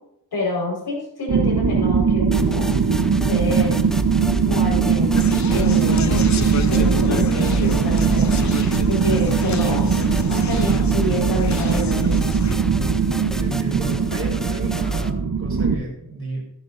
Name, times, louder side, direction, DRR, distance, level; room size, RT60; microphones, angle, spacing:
voice 1, 0.3-2.8 3.3-3.8 4.4-5.1 5.5-6.2 6.7-8.5 8.9-9.9 10.3-12.2, left 1 dB, 65° left, -1 dB, 4.9 m, -27 dB
sound 1, 1.3-15.7, right 5 dB, 65° right, 1.2 m, -20 dB
sound 2, 2.3-15.1, equal, ahead, 0.5 m, -35 dB
Conversation, 5.2-12.6, left 7 dB, 45° left, 0.6 m, -32 dB
voice 2, 8.9-9.3 13.4-16.4, right 2 dB, 35° right, -2 dB, 4.5 m, -32 dB
14.5 x 11.0 x 2.7 m, 0.74 s
wide cardioid pair, 165°, 41 cm